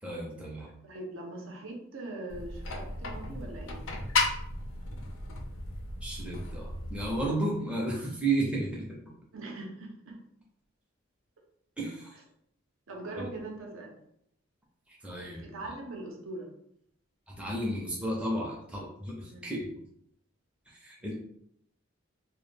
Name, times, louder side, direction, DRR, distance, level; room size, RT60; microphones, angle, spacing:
voice 1, 0.0-0.7 6.0-8.9 11.8-12.2 13.2-13.3 14.9-15.5 17.3-19.7 20.7-21.2, right 2 dB, 5° right, -3 dB, 0.4 m, -33 dB
voice 2, 0.8-3.8 9.3-10.2 12.9-14.0 15.4-16.5 19.3-19.5 21.1-21.2, right 2 dB, 75° right, 1 dB, 0.6 m, -41 dB
sound 1, 2.3-7.3, left 3 dB, 70° left, 0.4 m, -34 dB
2.1 x 2.0 x 3.1 m, 0.73 s
head